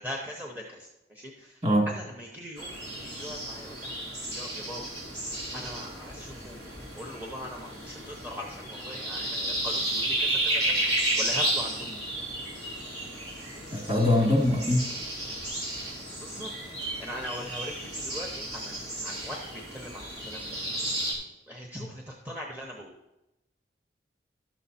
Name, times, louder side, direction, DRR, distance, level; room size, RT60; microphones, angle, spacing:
voice 1, 0.0-1.6 1.9-3.9 4.3-4.8 5.5-6.6 6.9-12.0 16.2-16.5 16.8-20.5 21.5-22.9, equal, 10° right, -1 dB, 0.9 m, -41 dB
sound 1, 2.6-21.1, right 1 dB, 70° right, 3.5 m, -33 dB
voice 2, 13.7-14.9 21.7-21.9, left 1 dB, 35° right, -1 dB, 2.3 m, -23 dB
11.5 x 7.2 x 4.2 m, 0.92 s
head